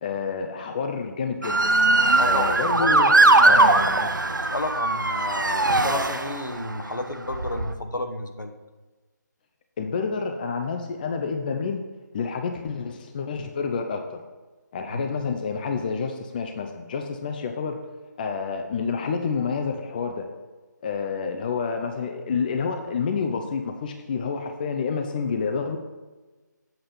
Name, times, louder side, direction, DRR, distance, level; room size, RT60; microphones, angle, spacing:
voice 1, 0.0-1.7 2.3-4.1 9.8-11.8 12.1-14.2 14.7-17.8 18.2-20.3 20.8-25.8, left 5 dB, 25° left, 5 dB, 0.6 m, -29 dB
Motor vehicle (road) / Siren, 1.4-6.7 7.3-7.7, right 2 dB, 85° right, 0.7 m, -20 dB
voice 2, 2.2-3.8 4.5-8.5 14.9-15.0, left 2 dB, 75° left, 6 dB, 1.1 m, -31 dB
8.1 x 5.0 x 5.7 m, 1.2 s
figure-of-eight pair, 150°, 10 cm